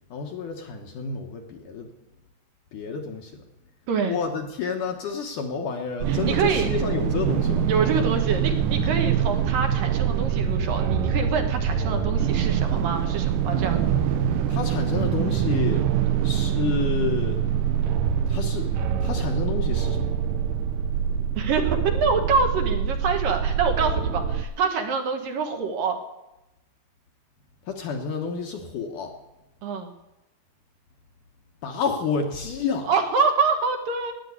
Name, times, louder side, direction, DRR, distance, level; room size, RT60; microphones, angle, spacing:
voice 1, 0.1-1.9 2.7-3.4 4.0-7.7 14.5-15.9 16.2-17.4 18.3-20.1 27.7-29.2 31.6-32.9, left 5 dB, 65° left, 3 dB, 2.2 m, -30 dB
sound 1, 6.0-24.4, right 8 dB, 85° right, 1.9 m, -24 dB
voice 2, 6.1-6.7 7.7-13.8 21.4-26.0 29.6-29.9 32.9-34.1, right 5 dB, 65° right, 4 dB, 2.5 m, -26 dB
13.0 x 9.7 x 9.6 m, 0.96 s
omnidirectional pair, 4.7 m